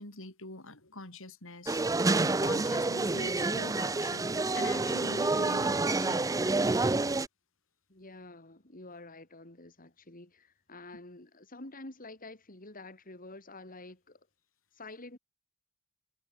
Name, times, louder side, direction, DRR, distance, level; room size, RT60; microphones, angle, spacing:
voice 1, 0.0-1.8 2.2-6.3, left 2 dB, 65° left, 6.4 m, -44 dB
sound 1, 1.7-7.3, right 3 dB, 15° right, 0.5 m, -28 dB
voice 2, 7.9-14.3 14.7-15.2, left 2 dB, 40° left, 3.7 m, -48 dB
head